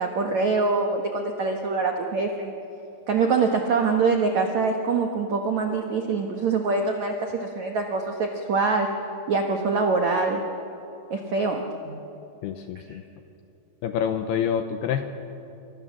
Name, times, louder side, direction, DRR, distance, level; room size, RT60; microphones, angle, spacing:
voice 1, 0.0-2.5 3.1-8.9 9.3-10.4 11.1-12.0 12.9-13.0, right 4 dB, 70° right, 3 dB, 1.7 m, -24 dB
voice 2, 12.4-13.0 13.8-15.0, left 8 dB, 75° left, 7 dB, 2.4 m, -27 dB
30.0 x 25.5 x 7.4 m, 2.8 s
omnidirectional pair, 5.5 m